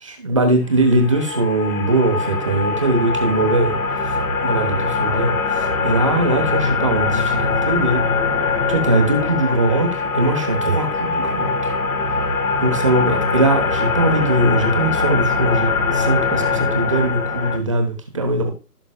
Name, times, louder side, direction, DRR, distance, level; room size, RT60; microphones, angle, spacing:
voice 1, 0.0-3.8 4.0-4.1 4.4-8.0 8.7-9.9 10.1-11.5 12.6-18.5, right 2 dB, 20° right, 4 dB, 1.0 m, -20 dB
sound 1, 0.8-17.6, left 4 dB, 60° left, 2.0 m, -22 dB
15.5 x 6.0 x 2.3 m, 0.32 s
hypercardioid pair, 170°, 48 cm